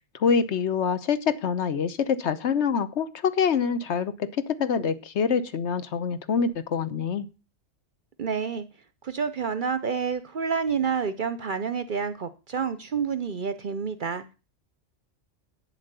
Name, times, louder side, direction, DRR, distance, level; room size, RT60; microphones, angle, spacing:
voice 1, 0.1-7.3, left 6 dB, 65° left, 13 dB, 1.1 m, -25 dB
voice 2, 8.2-8.6 9.0-14.3, right 6 dB, 50° right, 13 dB, 0.7 m, -29 dB
9.1 x 7.4 x 6.7 m, 0.33 s
omnidirectional pair, 1.3 m